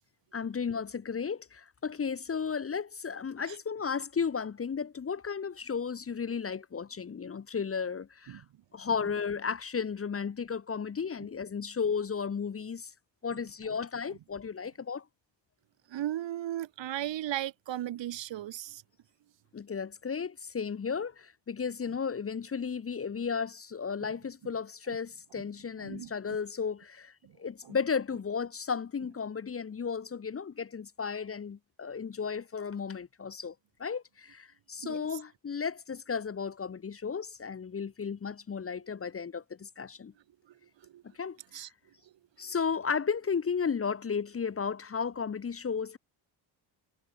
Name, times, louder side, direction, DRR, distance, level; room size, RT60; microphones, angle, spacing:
voice 1, 0.3-8.4 8.7-12.9 13.2-15.0 19.5-27.1 27.4-33.5 33.8-40.1 41.2-41.6 42.4-46.0, left 6 dB, 30° left, 1.1 m, -34 dB
voice 2, 15.9-18.8 24.0-24.1 25.8-26.1 27.2-27.3 27.6-27.7 34.8-35.2 40.8-41.0 41.5-41.7, right 12 dB, 65° right, 2.3 m, -36 dB
cardioid pair, 85°, 47 cm